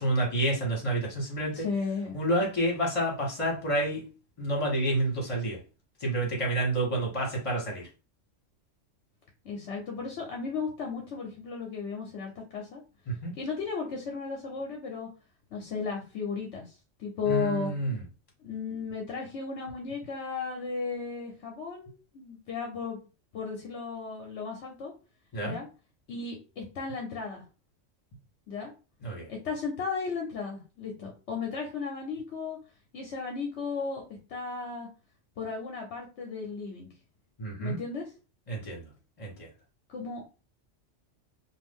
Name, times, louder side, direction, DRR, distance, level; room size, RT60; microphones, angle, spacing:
voice 1, 0.0-1.6 2.1-4.0 4.4-5.6 6.0-7.8 13.1-13.4 17.3-18.0 25.3-25.6 29.0-29.3 37.4-37.8 38.5-38.8 39.2-39.5, right 1 dB, 25° left, -2 dB, 1.2 m, -29 dB
voice 2, 1.5-2.2 9.4-12.8 13.4-15.1 15.5-16.7 17.0-17.7 18.4-23.0 23.3-24.9 25.4-25.7 26.1-27.4 28.5-28.7 29.3-32.6 32.9-34.0 34.3-34.9 35.4-36.9 37.6-38.1 39.9-40.2, left 5 dB, 65° left, 0 dB, 0.9 m, -35 dB
2.5 x 2.5 x 3.5 m, 0.32 s
omnidirectional pair, 1.3 m